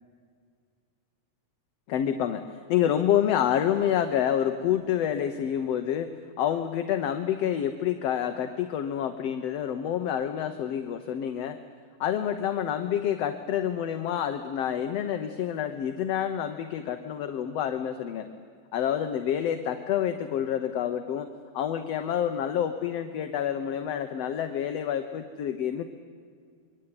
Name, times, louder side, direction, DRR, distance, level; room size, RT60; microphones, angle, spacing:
voice 1, 1.9-11.6 12.0-18.3 18.7-21.3 21.5-25.9, left 9 dB, 65° left, 7 dB, 2.0 m, -28 dB
26.5 x 23.0 x 9.8 m, 2.1 s
omnidirectional pair, 3.5 m